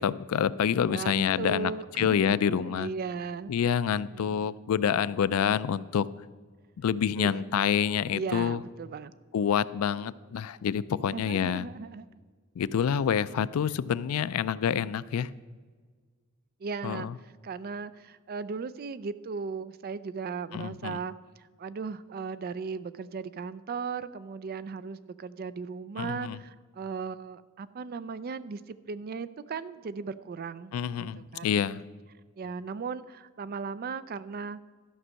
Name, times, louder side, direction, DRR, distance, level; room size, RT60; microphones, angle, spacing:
voice 1, 0.0-1.7 2.0-2.9 3.5-6.1 6.8-8.6 9.3-11.7 12.6-15.3 16.8-17.1 20.5-21.0 26.0-26.4 30.7-31.8, left 8 dB, 90° left, 17 dB, 0.4 m, -27 dB
voice 2, 0.8-3.5 4.0-4.5 7.2-7.4 8.1-9.1 11.1-12.1 13.3-13.4 16.6-21.1 21.6-30.7 31.2-31.8 32.4-34.6, right 5 dB, 45° right, 15 dB, 0.4 m, -37 dB
12.5 x 5.3 x 6.3 m, 1.5 s
head